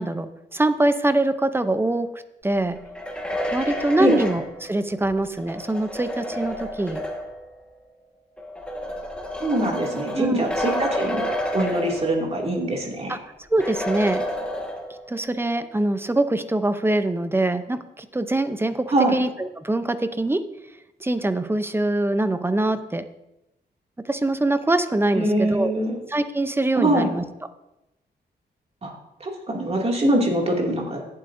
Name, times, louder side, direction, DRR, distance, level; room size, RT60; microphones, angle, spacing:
voice 1, 0.0-2.8 3.5-7.0 10.1-10.5 13.1-13.2 13.5-14.3 15.1-20.4 21.0-23.1 24.0-25.7 26.1-27.2, right 2 dB, 15° right, 11 dB, 0.5 m, -23 dB
sound 1, 2.8-7.5 8.4-12.5 12.9-13.0 13.6-15.2, equal, 5° left, 1.4 m, -30 dB
voice 2, 9.4-11.2 11.5-13.2 18.9-19.2 25.1-25.9 26.8-27.1 28.8-28.9 29.2-31.0, right 1 dB, 35° right, 0 dB, 2.3 m, -23 dB
17.5 x 7.7 x 2.6 m, 0.90 s
wide cardioid pair, 115°, 18 cm